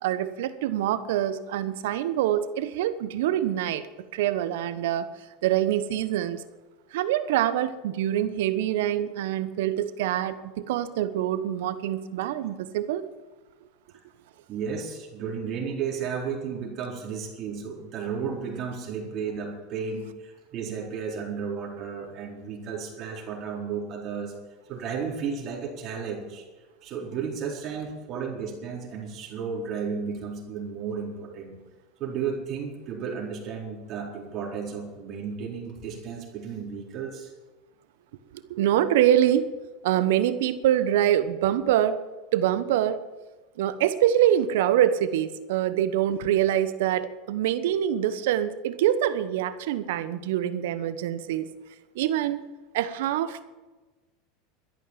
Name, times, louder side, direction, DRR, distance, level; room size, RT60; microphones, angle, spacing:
voice 1, 0.0-3.9 4.1-5.0 5.4-6.4 6.9-13.1 38.3-39.5 39.8-42.0 42.3-43.0 43.6-51.5 51.9-52.5 52.7-53.4, right 11 dB, 70° right, 13 dB, 1.0 m, -25 dB
voice 2, 14.5-24.3 24.7-26.4 26.8-31.6 32.0-37.3, right 6 dB, 45° right, -1 dB, 4.3 m, -33 dB
12.5 x 11.0 x 7.5 m, 1.2 s
hypercardioid pair, 90°, 0 cm